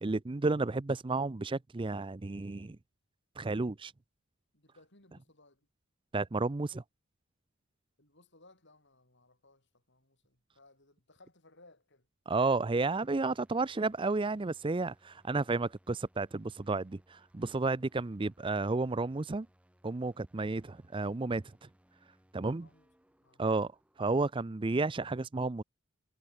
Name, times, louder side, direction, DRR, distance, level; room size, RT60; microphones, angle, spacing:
voice 1, 0.0-2.8 3.4-3.9 6.1-6.8 12.3-19.5 19.8-21.4 22.3-22.7 23.4-23.7 24.0-25.6, right 3 dB, 25° right, 0.5 m, -32 dB
voice 2, 4.5-5.7 8.0-12.1 22.4-22.9 23.2-23.4, left 2 dB, 55° left, 7.7 m, -62 dB
sound 1, 12.9-25.1, equal, 5° right, 4.7 m, -68 dB
head